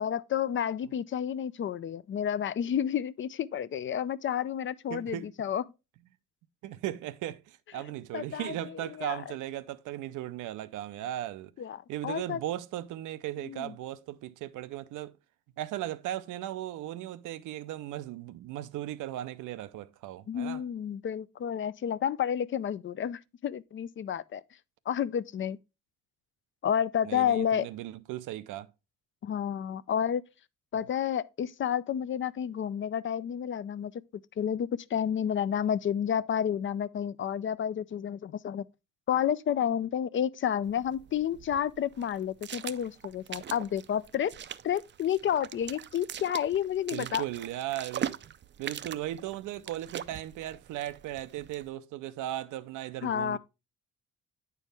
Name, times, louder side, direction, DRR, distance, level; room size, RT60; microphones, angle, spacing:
voice 1, 0.0-5.6 8.1-9.3 11.6-12.4 13.4-13.7 20.3-24.4 24.9-25.6 26.6-27.7 29.2-30.2 30.7-33.9 34.4-38.7 39.1-44.3 44.6-47.2 53.0-53.4, left 9 dB, 40° left, 0.4 m, -30 dB
voice 2, 4.9-5.3 6.6-11.5 11.9-15.1 15.6-20.6 27.0-28.7 30.7-30.9 46.9-48.2 48.6-53.4, right 13 dB, 85° right, 0.6 m, -37 dB
sound 1, 40.6-51.7, right 9 dB, 40° right, 0.4 m, -42 dB
8.8 x 4.6 x 3.3 m
cardioid pair, 90°, 30 cm